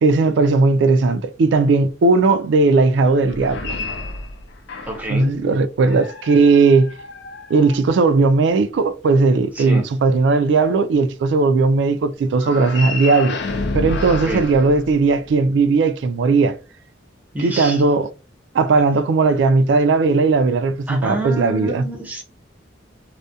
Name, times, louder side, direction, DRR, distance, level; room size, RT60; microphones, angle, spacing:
voice 1, 0.0-3.8 5.1-6.9 7.5-13.4 13.7-16.6 17.4-18.1 18.5-21.8, right 3 dB, 65° right, 0.3 m, -17 dB
sound 1, 3.2-5.2 5.8-8.2 12.3-15.5, left 3 dB, 65° left, 0.4 m, -30 dB
voice 2, 4.9-5.3 9.5-9.8 14.1-14.4 17.3-17.8 20.9-22.2, right 1 dB, 10° right, 0.6 m, -27 dB
2.3 x 2.1 x 2.6 m
head